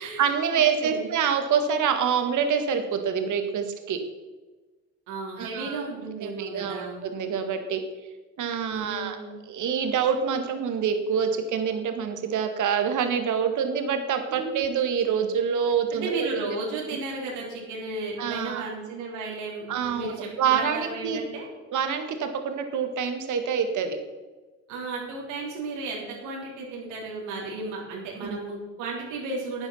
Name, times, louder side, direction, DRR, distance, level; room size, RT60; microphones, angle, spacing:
voice 1, 0.0-4.0 5.4-5.9 6.2-7.8 8.4-9.2 9.5-16.4 18.2-18.6 19.7-21.2 21.7-24.0 28.2-28.4, right 7 dB, 55° right, 7 dB, 1.9 m, -26 dB
voice 2, 0.5-1.1 5.1-7.0 8.7-9.4 14.3-14.5 15.9-21.5 24.7-29.7, right 3 dB, 75° right, -3 dB, 3.5 m, -34 dB
13.0 x 9.2 x 5.6 m, 1.3 s
hypercardioid pair, 60°, 36 cm